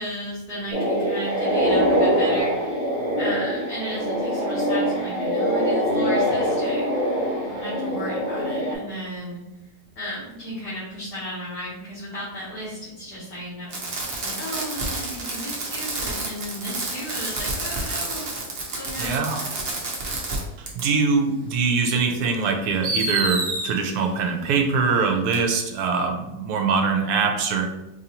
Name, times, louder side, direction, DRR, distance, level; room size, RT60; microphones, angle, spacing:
voice 1, 0.0-2.8 3.2-7.1 7.4-9.4 9.9-13.7 14.2-18.3 18.7-19.2, equal, 75° left, -9 dB, 1.7 m, -34 dB
sound 1, 0.7-8.7, equal, 35° left, 1.1 m, -23 dB
Fireworks, 13.7-20.4 20.7-20.8 21.9-22.0 22.8-23.7 25.3-25.4, right 2 dB, 45° right, 0.9 m, -29 dB
voice 2, 19.0-19.4 20.6-27.7, right 5 dB, 80° right, 4 dB, 1.1 m, -23 dB
4.6 x 2.7 x 2.8 m, 0.96 s
omnidirectional pair, 1.7 m